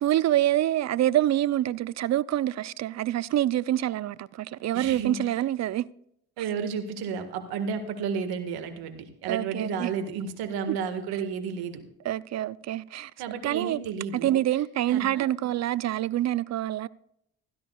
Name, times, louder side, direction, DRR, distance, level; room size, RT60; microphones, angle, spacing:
voice 1, 0.0-5.9 9.3-9.9 10.7-10.8 12.0-13.1 13.4-13.8 14.1-16.9, right 13 dB, 45° right, 0.5 m, -26 dB
voice 2, 4.7-5.3 6.4-11.8 13.2-14.4 14.9-15.5, right 6 dB, 75° right, 1.8 m, -32 dB
16.0 x 13.0 x 2.4 m
hypercardioid pair, 60°, 38 cm